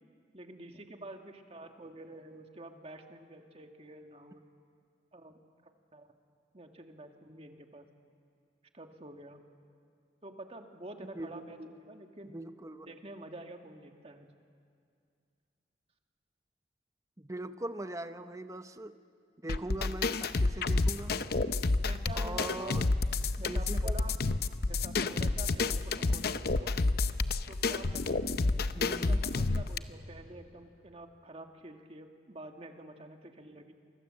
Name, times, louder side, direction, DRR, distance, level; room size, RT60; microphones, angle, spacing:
voice 1, 0.3-4.4 5.1-5.4 5.9-6.1 6.5-7.9 8.7-9.4 10.2-12.4 12.9-14.3 21.8-22.8 23.4-24.2 24.7-26.7 27.5-28.2 28.8-33.8, right 1 dB, 35° right, 4 dB, 1.8 m, -48 dB
voice 2, 11.1-11.7 12.2-12.9 17.2-19.0 19.4-21.2 22.1-22.9 23.5-23.9 28.7-29.2, right 1 dB, 20° right, 10 dB, 0.8 m, -41 dB
sound 1, 19.5-29.8, left 3 dB, 60° left, 0.7 m, -30 dB
29.5 x 24.5 x 7.6 m, 2.3 s
head